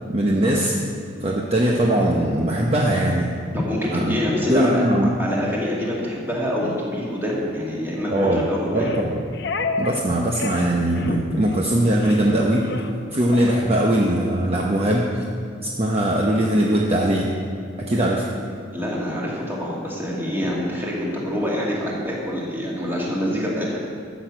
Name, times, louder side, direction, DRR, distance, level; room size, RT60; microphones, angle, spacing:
voice 1, 0.1-0.8 1.2-3.3 3.9-4.1 4.5-5.2 8.1-8.4 8.7-9.3 9.8-12.7 13.1-15.2 15.6-17.3 17.8-18.3, right 1 dB, 30° right, -2 dB, 0.8 m, -20 dB
voice 2, 3.5-4.9 5.2-8.9 18.7-23.8, equal, 10° right, -5 dB, 2.2 m, -26 dB
sound 1, 6.6-6.8 7.3-7.6 8.2-8.4 8.7-10.0 10.3-10.7 11.0-11.2 11.5-11.7 12.0-12.3 12.6-12.9 13.3-13.6, left 3 dB, 55° left, 0.6 m, -30 dB
13.0 x 6.2 x 7.5 m, 2.4 s
head